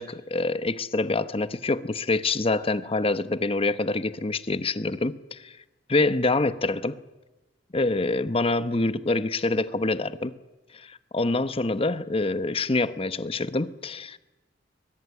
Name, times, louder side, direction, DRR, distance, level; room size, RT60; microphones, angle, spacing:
voice 1, 0.0-5.6 5.9-7.0 7.7-10.4 10.7-14.2, left 2 dB, 30° left, 0.9 m, -26 dB
23.0 x 19.5 x 9.7 m
head